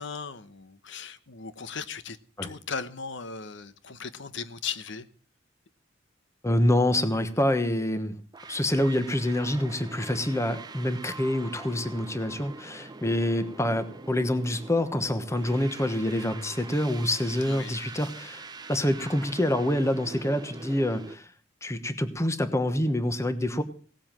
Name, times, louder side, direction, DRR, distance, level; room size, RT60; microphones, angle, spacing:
voice 1, 0.0-2.2 2.4-5.1 17.4-17.8, left 5 dB, 65° left, 1.0 m, -37 dB
voice 2, 6.4-8.1 8.5-21.3 21.6-23.6, left 1 dB, 15° left, 1.1 m, -26 dB
sound 1, 8.3-21.2, right 3 dB, 20° right, 0.7 m, -44 dB
18.0 x 7.8 x 7.5 m
head